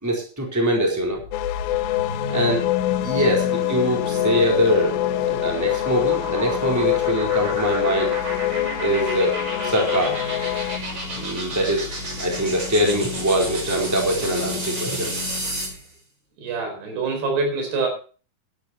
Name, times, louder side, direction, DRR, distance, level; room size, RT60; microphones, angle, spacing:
voice 1, 0.0-1.2 2.3-2.6 3.0-4.9 5.2-8.1 8.8-9.4 9.6-10.2 11.2-11.9 12.2-15.1, equal, 5° right, -1 dB, 3.8 m, -23 dB
sound 1, 1.0-15.8, left 1 dB, 30° right, 6.2 m, -30 dB
sound 2, 1.3-10.8, left 16 dB, 80° left, 2.3 m, -25 dB
voice 2, 16.4-17.9, right 4 dB, 90° right, 2 dB, 6.5 m, -25 dB
12.0 x 12.0 x 4.5 m, 0.38 s
omnidirectional pair, 4.5 m